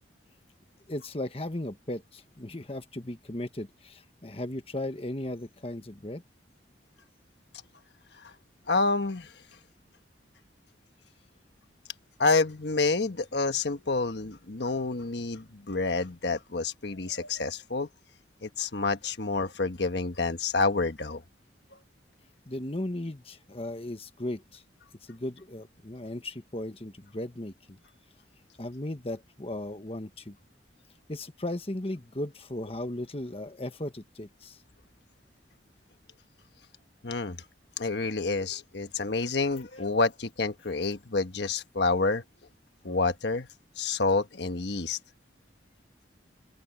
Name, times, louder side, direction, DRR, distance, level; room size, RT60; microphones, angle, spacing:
voice 1, 0.9-6.2 22.5-24.6 25.1-27.8 28.6-30.3 31.1-34.6, left 1 dB, 30° left, 1.3 m, -36 dB
voice 2, 8.7-9.3 12.2-17.9 18.4-21.2 37.0-37.4 37.8-42.2 42.8-43.5 43.8-45.0, left 3 dB, 65° left, 1.3 m, -28 dB
open air
head